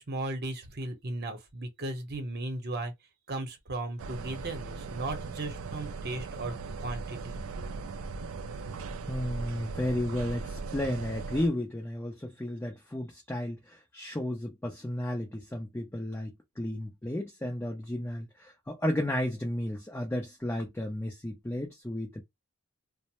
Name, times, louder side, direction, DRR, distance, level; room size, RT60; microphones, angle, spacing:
voice 1, 0.0-2.9 3.3-6.5 6.8-7.4, right 2 dB, 50° right, 0.9 m, -36 dB
sound 1, 4.0-11.5, right 4 dB, 65° right, 0.4 m, -39 dB
voice 2, 9.1-22.2, left 1 dB, 10° left, 0.5 m, -33 dB
2.5 x 2.1 x 2.9 m
head